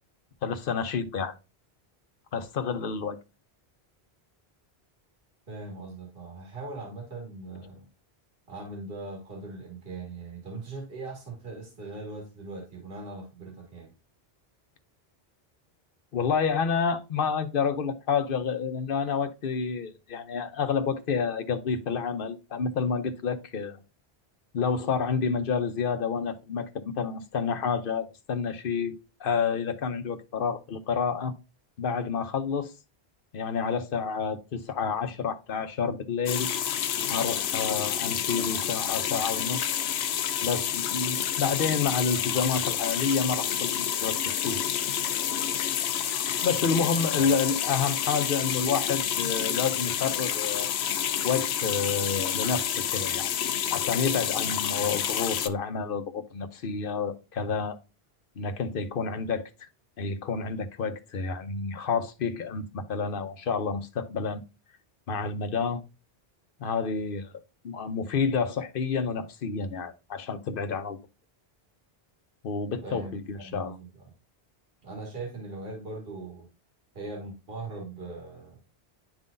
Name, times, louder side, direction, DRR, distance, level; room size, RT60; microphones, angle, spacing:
voice 1, 0.4-1.3 2.3-3.2 16.1-23.8 24.5-31.3 31.8-32.7 33.3-36.5 37.1-39.7 40.4-43.7 44.0-44.7 46.4-50.7 51.2-53.3 53.7-57.8 58.4-59.7 60.0-64.4 65.1-65.8 66.6-67.3 67.6-71.0 72.4-73.8, left 5 dB, 60° left, 0.9 m, -29 dB
voice 2, 5.5-7.9 8.5-13.9 47.1-47.3 72.8-74.0 74.8-76.5 76.9-78.6, right 3 dB, 65° right, 2.1 m, -40 dB
sound 1, 36.3-55.5, left 9 dB, 90° left, 0.9 m, -29 dB
10.5 x 3.8 x 2.6 m
omnidirectional pair, 1.0 m